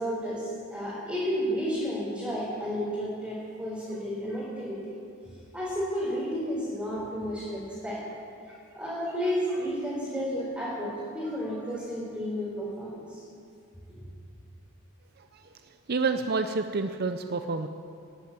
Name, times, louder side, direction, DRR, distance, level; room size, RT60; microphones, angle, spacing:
voice 1, 0.0-4.9 5.5-8.0 8.5-13.2 13.9-14.0, equal, 5° right, -10 dB, 4.2 m, -32 dB
voice 2, 15.2-17.7, right 4 dB, 45° right, 8 dB, 0.6 m, -29 dB
13.0 x 11.0 x 8.8 m, 2.4 s
head